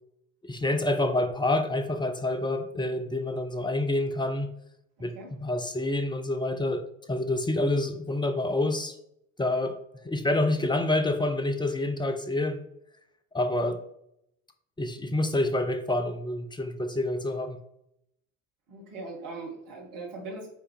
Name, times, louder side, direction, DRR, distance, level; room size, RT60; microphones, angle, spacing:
voice 1, 0.4-4.5 5.0-5.1 5.4-9.0 9.4-9.8 10.0-12.6 13.3-13.8 14.8-17.6, left 2 dB, 10° left, 0.8 m, -27 dB
voice 2, 5.0-5.3 18.7-20.5, right 3 dB, 55° right, 2.3 m, -40 dB
9.2 x 3.4 x 3.6 m
figure-of-eight pair, 60°, 40 cm